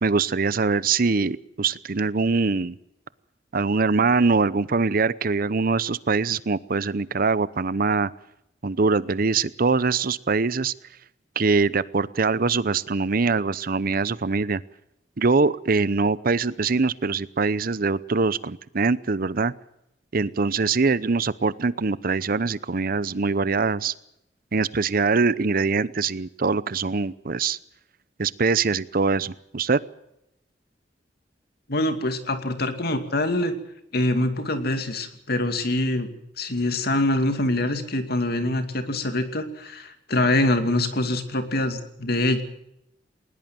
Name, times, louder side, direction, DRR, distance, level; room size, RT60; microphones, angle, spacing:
voice 1, 0.0-2.8 3.5-8.1 8.6-10.7 11.4-14.6 15.2-19.5 20.1-23.9 24.5-27.6 28.2-29.8, right 4 dB, 55° right, 18 dB, 0.7 m, -23 dB
voice 2, 31.7-33.5 33.9-36.1 36.4-42.4, left 1 dB, 60° left, 8 dB, 2.5 m, -24 dB
20.0 x 20.0 x 7.6 m, 0.80 s
head